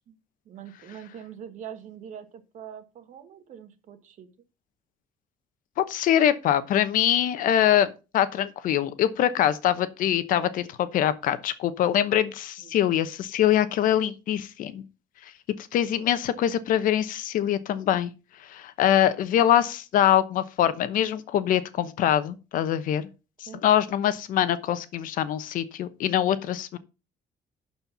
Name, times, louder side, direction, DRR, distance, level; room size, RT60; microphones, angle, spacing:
voice 1, 0.4-4.3 12.6-12.7 23.5-23.6, right 9 dB, 60° right, 1.4 m, -43 dB
voice 2, 5.9-14.8 15.7-18.1 18.4-23.1 23.4-26.8, left 11 dB, 70° left, 0.9 m, -24 dB
11.5 x 4.4 x 5.5 m
cardioid pair, 150°, 14 cm